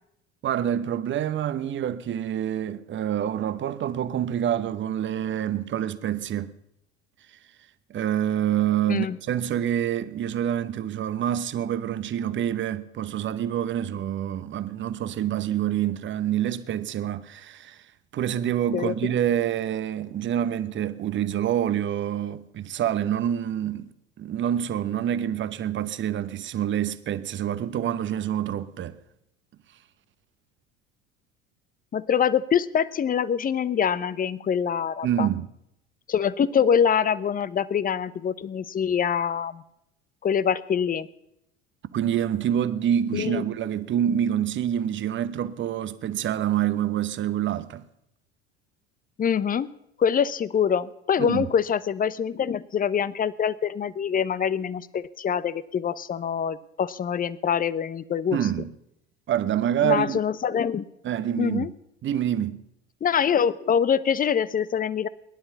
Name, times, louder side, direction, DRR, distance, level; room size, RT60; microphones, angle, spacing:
voice 1, 0.4-6.5 7.9-17.8 18.1-23.9 24.2-29.0 35.0-35.5 41.9-47.8 51.2-51.5 58.3-58.7 59.3-60.2 61.0-61.7 62.0-62.6, right 10 dB, 35° right, 1.0 m, -27 dB
voice 2, 18.7-19.1 31.9-35.3 36.1-39.6 40.2-41.1 43.1-43.4 49.2-49.7 50.0-58.4 59.8-60.9 61.4-61.7 63.0-65.1, left 7 dB, 25° left, 0.8 m, -24 dB
19.0 x 11.0 x 7.0 m
hypercardioid pair, 70°, 33 cm